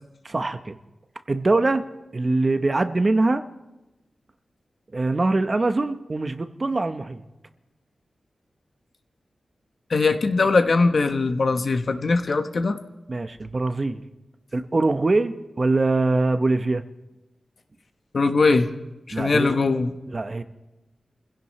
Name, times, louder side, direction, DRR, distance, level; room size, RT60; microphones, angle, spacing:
voice 1, 0.2-0.8 1.3-3.4 4.9-7.2 13.1-14.0 14.5-16.8 19.1-19.6 20.1-20.4, right 2 dB, 40° right, 9 dB, 0.9 m, -23 dB
voice 2, 9.9-12.8 18.1-18.7 19.1-19.9, left 3 dB, 60° left, 7 dB, 1.1 m, -21 dB
28.0 x 16.0 x 3.2 m, 1.0 s
wide cardioid pair, 80°, 0 cm